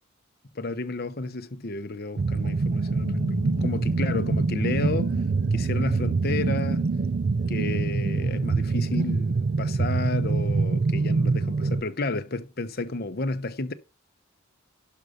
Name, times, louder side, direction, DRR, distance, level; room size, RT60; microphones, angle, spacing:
voice 1, 0.5-5.1 5.5-6.9 7.5-13.7, left 2 dB, 50° left, 1.0 m, -32 dB
sound 1, 2.2-11.8, right 4 dB, 45° right, 0.4 m, -25 dB
sound 2, 3.0-9.2, left 3 dB, 85° left, 1.3 m, -39 dB
12.0 x 5.5 x 5.2 m
head